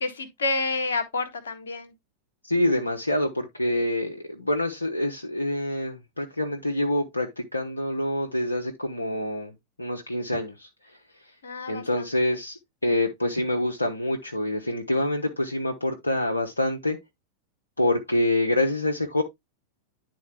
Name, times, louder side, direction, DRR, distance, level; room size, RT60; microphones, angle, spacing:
voice 1, 0.0-1.9 11.4-12.1, left 3 dB, 65° left, 1.3 m, -29 dB
voice 2, 2.5-9.5 9.8-10.7 11.7-17.0 17.8-19.2, left 1 dB, 80° left, 0.8 m, -26 dB
10.5 x 3.9 x 3.1 m
figure-of-eight pair, 90°, 0 cm